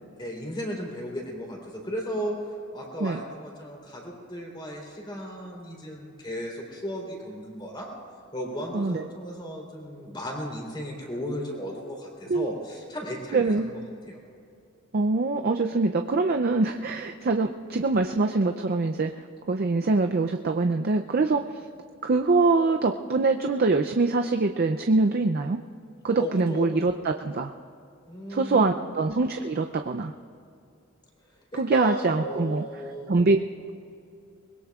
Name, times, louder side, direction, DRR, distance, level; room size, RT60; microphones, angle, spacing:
voice 1, 0.1-7.9 8.3-13.8 14.1-14.2 26.2-26.7 28.1-28.8 31.5-33.2, equal, 20° left, -1 dB, 3.5 m, -35 dB
voice 2, 13.3-13.6 14.9-19.1 19.5-21.4 22.0-25.6 26.0-27.5 28.3-30.1 31.5-32.6 33.1-33.4, right 3 dB, 50° right, 5 dB, 0.5 m, -24 dB
23.5 x 21.0 x 2.4 m, 2.5 s
head